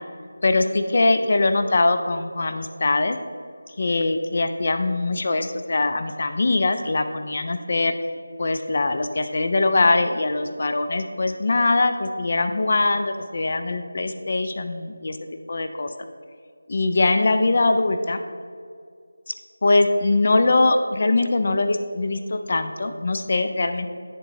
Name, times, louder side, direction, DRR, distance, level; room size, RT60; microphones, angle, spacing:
voice 1, 0.4-3.2 3.8-8.0 8.4-15.2 15.5-15.9 16.7-18.2 19.6-23.9, left 2 dB, 45° left, 8 dB, 0.4 m, -22 dB
10.5 x 3.9 x 3.7 m, 2.2 s
figure-of-eight pair, 170°, 0 cm